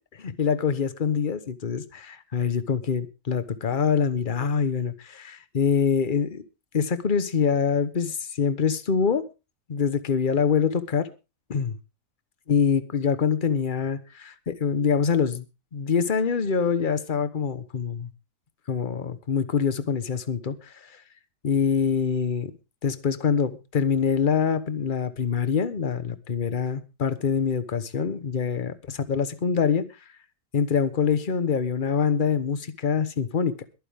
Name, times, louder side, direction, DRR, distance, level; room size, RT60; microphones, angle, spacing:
voice 1, 0.2-6.4 6.7-9.3 9.7-11.1 11.5-11.7 12.5-15.5 15.7-18.1 18.7-21.0 21.4-22.5 22.8-29.9 30.5-33.6, left 6 dB, 35° left, 1.1 m, -25 dB
22.0 x 9.4 x 3.5 m
omnidirectional pair, 1.7 m